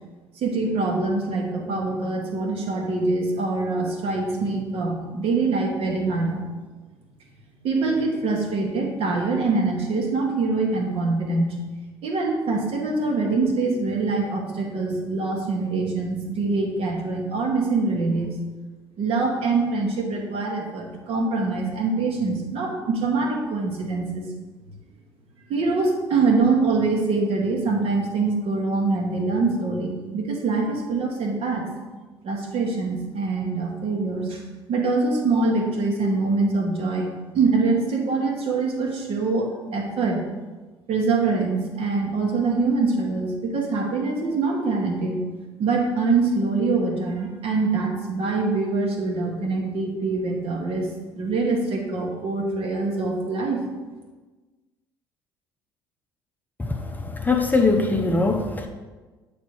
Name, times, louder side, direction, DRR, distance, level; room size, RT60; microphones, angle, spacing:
voice 1, 0.3-6.4 7.6-11.6 12.0-18.4 19.0-24.2 25.5-31.7 32.2-34.4 34.7-40.2 40.9-45.2 45.6-50.9 51.1-53.6, right 3 dB, 50° right, 1 dB, 1.3 m, -24 dB
voice 2, 56.6-58.7, left 3 dB, 15° left, 2 dB, 0.7 m, -22 dB
8.1 x 3.5 x 4.6 m, 1.3 s
figure-of-eight pair, 55°, 13 cm